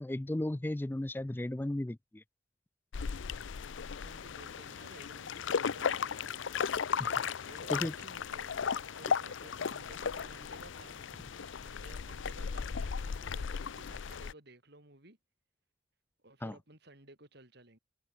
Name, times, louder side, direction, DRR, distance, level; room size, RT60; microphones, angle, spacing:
voice 1, 0.0-2.2 7.0-7.1 7.7-7.9 16.4-16.5, left 1 dB, 10° left, 0.3 m, -35 dB
sound 1, 2.9-14.3, left 6 dB, 65° left, 0.5 m, -36 dB
voice 2, 3.8-6.4 7.4-15.2 16.2-17.8, right 2 dB, 55° right, 4.5 m, -55 dB
head